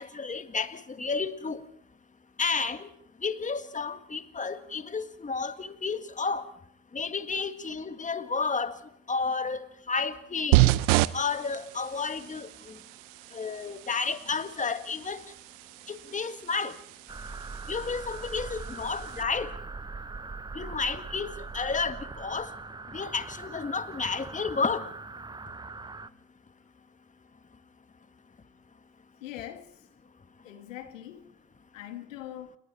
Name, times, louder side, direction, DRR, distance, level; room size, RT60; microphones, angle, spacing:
voice 1, 0.0-1.6 2.4-2.9 3.2-6.5 6.9-8.8 9.1-10.7 11.1-12.7 13.3-15.2 15.9-16.7 17.7-19.5 20.6-22.5 22.9-24.9, left 4 dB, 20° left, 1.8 m, -31 dB
sound 1, 10.5-19.2, right 19 dB, 75° right, 0.9 m, -30 dB
sound 2, 17.1-26.1, right 3 dB, 10° right, 0.8 m, -41 dB
voice 2, 29.2-29.9 30.4-31.3 31.7-32.6, left 12 dB, 85° left, 1.8 m, -42 dB
29.0 x 21.5 x 4.4 m
hypercardioid pair, 75°, 38 cm